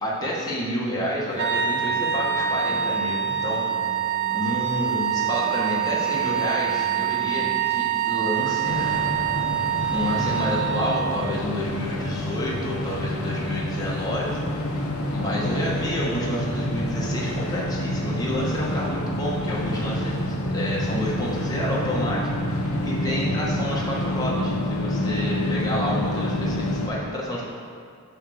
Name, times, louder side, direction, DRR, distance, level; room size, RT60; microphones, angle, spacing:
voice 1, 0.0-3.6 4.3-9.0 9.9-14.5 15.1-27.4, equal, 15° left, -5 dB, 1.3 m, -29 dB
Singing, 1.2-12.3, equal, 20° right, 0.7 m, -44 dB
sound 1, 1.4-11.3, right 9 dB, 55° right, 0.6 m, -25 dB
sound 2, 8.6-26.9, left 1 dB, 70° left, 0.8 m, -28 dB
8.5 x 3.4 x 6.3 m, 2.2 s
head